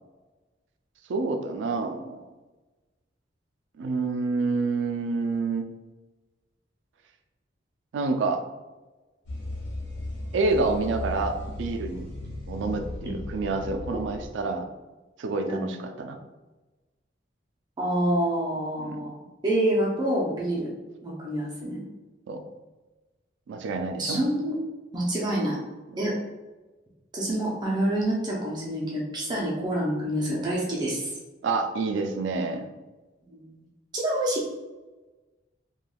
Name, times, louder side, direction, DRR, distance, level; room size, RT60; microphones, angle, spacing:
voice 1, 1.1-2.2 3.8-5.7 7.9-8.4 10.3-12.1 12.5-14.7 15.2-16.2 18.8-19.1 22.3-22.5 23.5-24.2 25.9-26.0 31.4-32.7, right 3 dB, 75° right, 6 dB, 0.3 m, -28 dB
sound 1, 9.3-14.3, left 1 dB, 80° left, 1.0 m, -36 dB
voice 2, 17.8-19.2 19.4-20.7 21.0-21.8 24.0-24.6 24.9-25.6 26.0-26.1 27.1-31.1 33.2-33.5 33.9-34.4, right 1 dB, 25° right, -5 dB, 0.5 m, -27 dB
3.3 x 2.2 x 2.2 m, 1.2 s
head